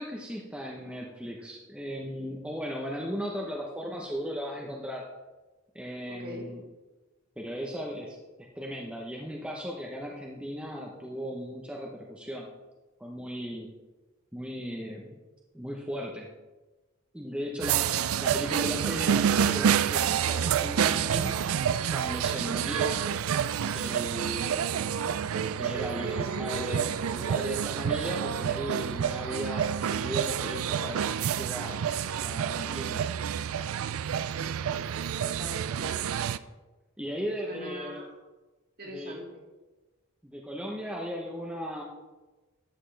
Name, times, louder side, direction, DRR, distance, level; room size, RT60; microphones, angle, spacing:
voice 1, 0.0-5.0 5.7-6.6 7.4-8.2 8.5-12.5 13.0-13.7 14.3-15.2 15.5-16.3 17.1-17.8 18.2-21.4 21.9-23.1 23.7-24.7 25.3-31.8 32.2-33.1 37.0-38.0 38.8-39.2 40.2-41.8, equal, 5° right, -2 dB, 0.9 m, -37 dB
voice 2, 6.1-6.5 26.0-26.7 34.9-36.0 37.5-38.1 38.8-39.4, equal, 45° right, -1 dB, 2.3 m, -41 dB
sound 1, 17.6-36.4, right 8 dB, 80° right, 0.4 m, -28 dB
12.5 x 8.3 x 3.4 m, 1.2 s
head